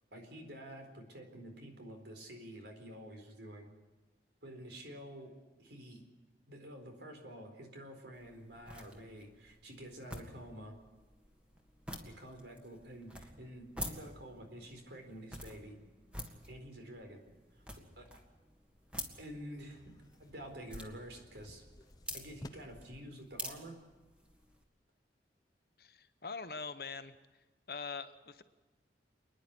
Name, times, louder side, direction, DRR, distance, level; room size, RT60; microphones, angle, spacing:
voice 1, 0.1-3.7 4.4-5.3 5.6-6.0 6.5-10.7 12.0-15.8 16.5-17.2 17.5-18.1 19.2-19.8 20.2-21.6 22.1-23.7, equal, 80° right, 4 dB, 4.2 m, -49 dB
sound 1, 8.1-24.6, equal, 5° right, 1.8 m, -49 dB
sound 2, 19.6-23.0, left 1 dB, 20° left, 0.7 m, -55 dB
voice 2, 25.8-27.1 27.7-28.4, left 5 dB, 55° left, 11 dB, 1.0 m, -43 dB
27.5 x 10.5 x 9.7 m, 1.2 s
head